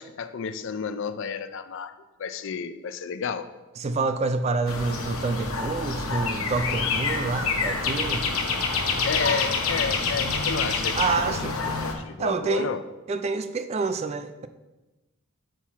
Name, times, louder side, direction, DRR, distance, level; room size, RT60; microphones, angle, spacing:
voice 1, 0.0-1.9 2.2-3.5 9.1-11.5 11.8-12.8, left 6 dB, 60° left, 11 dB, 0.4 m, -31 dB
voice 2, 3.8-8.3 10.9-11.6 12.2-12.7 13.1-14.5, right 4 dB, 30° right, 10 dB, 0.3 m, -27 dB
sound 1, 4.7-11.9, left 4 dB, 75° left, 0.8 m, -27 dB
5.6 x 4.6 x 5.8 m, 1.1 s
head